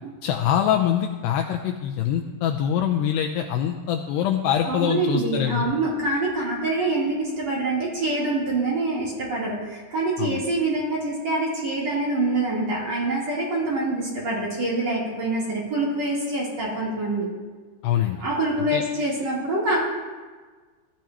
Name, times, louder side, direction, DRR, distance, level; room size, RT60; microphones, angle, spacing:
voice 1, 0.2-5.7 10.2-10.4 17.8-18.2 18.7-18.8, left 9 dB, 85° left, 4 dB, 2.4 m, -24 dB
voice 2, 4.6-17.3 18.1-19.8, right 2 dB, 35° right, -6 dB, 4.2 m, -25 dB
21.5 x 15.5 x 3.0 m, 1.4 s
omnidirectional pair, 5.6 m